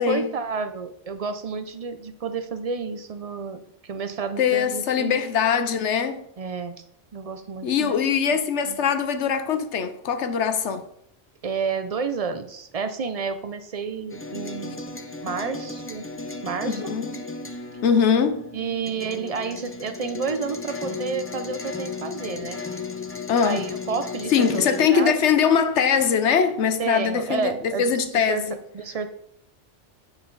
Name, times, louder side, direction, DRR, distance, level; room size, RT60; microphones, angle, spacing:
voice 1, 0.0-5.2 6.4-6.8 7.1-8.0 8.3-8.4 8.7-8.8 11.4-14.8 15.2-16.0 16.4-16.8 18.5-22.6 23.4-25.2 26.8-28.4 28.7-29.1, right 5 dB, 50° right, 0.4 m, -30 dB
voice 2, 4.4-6.2 7.6-10.8 16.6-17.1 17.8-18.5 23.3-23.7 24.3-28.6, left 7 dB, 70° left, 1.1 m, -22 dB
sound 1, 14.1-24.9, left 4 dB, 20° left, 0.4 m, -35 dB
8.9 x 5.6 x 4.0 m
omnidirectional pair, 1.3 m